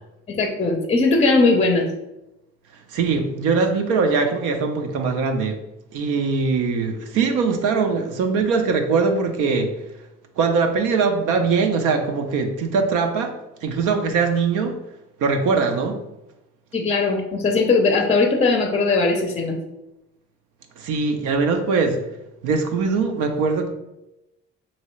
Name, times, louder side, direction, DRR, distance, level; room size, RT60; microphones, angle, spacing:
voice 1, 0.3-1.9 16.7-19.6, left 3 dB, 20° left, 4 dB, 0.5 m, -19 dB
voice 2, 2.9-5.6 5.9-9.8 10.4-14.8 15.2-16.0 20.8-22.1 22.4-23.7, right 4 dB, 90° right, 4 dB, 0.5 m, -21 dB
3.1 x 2.7 x 3.0 m, 0.92 s
cardioid pair, 90°, 30 cm